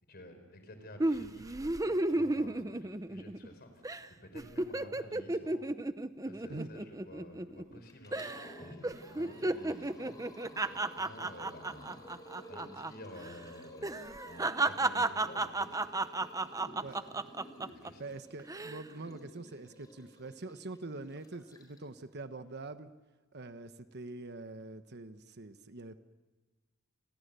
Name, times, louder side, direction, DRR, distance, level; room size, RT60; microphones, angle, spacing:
voice 1, 0.0-3.8 4.1-5.7 6.2-8.2 8.6-10.2 10.6-12.0 12.5-14.0 14.2-15.8 17.0-17.2 17.7-18.0, left 1 dB, 50° left, 7 dB, 4.6 m, -52 dB
sound 1, 1.0-3.5 3.8-4.1 4.4-7.8 8.1-8.5 8.8-12.9 13.2-13.3 13.8-17.9 18.4-18.8, right 2 dB, 15° right, 0.7 m, -33 dB
Liquid, 7.9-22.0, equal, 20° left, 4.0 m, -53 dB
voice 2, 18.0-22.9 23.3-26.0, right 2 dB, 55° right, 10 dB, 1.2 m, -44 dB
29.5 x 21.5 x 6.9 m, 1.3 s
head